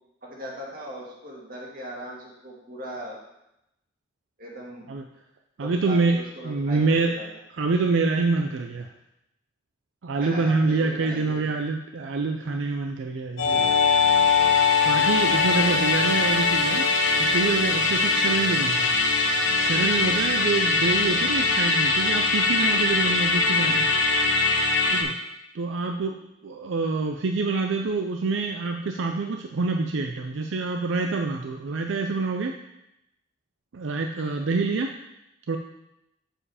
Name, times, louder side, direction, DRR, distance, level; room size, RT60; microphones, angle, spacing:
voice 1, 0.2-3.2 4.4-4.9 5.6-7.3 10.1-11.6 15.3-15.9, right 1 dB, 50° right, -3 dB, 2.0 m, -39 dB
voice 2, 5.6-6.2 6.4-7.2 7.6-8.9 10.0-13.7 14.3-16.9 17.2-18.9 19.6-23.9 24.9-25.1 25.5-32.6 33.7-34.9 35.5-35.6, right 3 dB, 80° right, 4 dB, 0.5 m, -26 dB
Musical instrument, 13.4-25.0, left 4 dB, 75° left, 1.1 m, -22 dB
7.6 x 4.9 x 4.9 m, 0.86 s
head